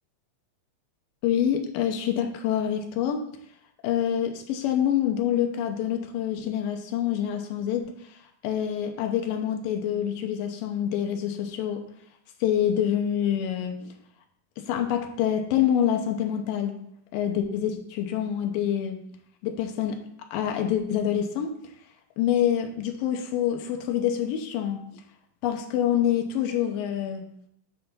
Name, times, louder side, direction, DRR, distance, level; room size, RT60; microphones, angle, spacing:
voice 1, 1.2-3.2 3.8-7.9 8.4-11.8 12.4-13.9 14.6-16.8 17.1-19.0 19.4-20.0 20.3-21.5 22.2-24.8 25.4-27.3, left 9 dB, 85° left, 4 dB, 2.5 m, -26 dB
9.1 x 3.4 x 5.5 m, 0.71 s
omnidirectional pair, 4.1 m